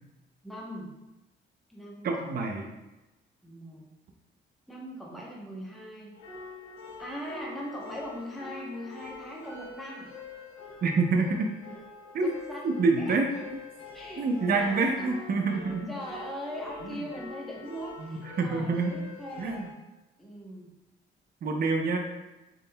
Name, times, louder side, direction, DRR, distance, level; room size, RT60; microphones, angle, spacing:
voice 1, 0.4-0.9 1.7-2.4 3.4-3.8 4.7-6.1 7.0-10.1 12.2-12.6 13.0-13.2 13.9-15.3 15.6-19.6 20.2-20.7, equal, ahead, -4 dB, 0.8 m, -40 dB
voice 2, 2.0-2.7 10.8-11.5 12.1-12.3 12.6-13.6 14.2-15.9 18.0-19.0 19.4-19.7 21.4-22.0, right 3 dB, 50° right, 3 dB, 0.6 m, -27 dB
sound 1, 6.1-19.7, left 4 dB, 80° left, 0.9 m, -45 dB
3.9 x 3.6 x 2.2 m, 1.0 s
cardioid pair, 90°, 20 cm